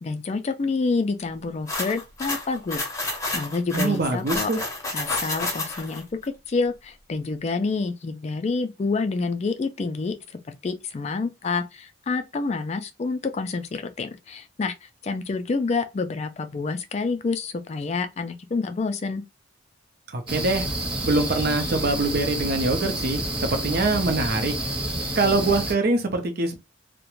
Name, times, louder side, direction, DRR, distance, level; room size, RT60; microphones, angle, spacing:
voice 1, 0.0-4.5 4.9-19.2, left 4 dB, 35° left, 0.3 m, -28 dB
sound 1, 1.7-6.0, left 2 dB, 15° left, 0.7 m, -30 dB
voice 2, 3.7-4.6 20.1-20.7 21.0-24.5 25.2-26.6, right 2 dB, 50° right, 0.6 m, -24 dB
sound 2, 20.3-25.7, right 1 dB, 25° right, 0.8 m, -29 dB
2.4 x 2.1 x 3.0 m
head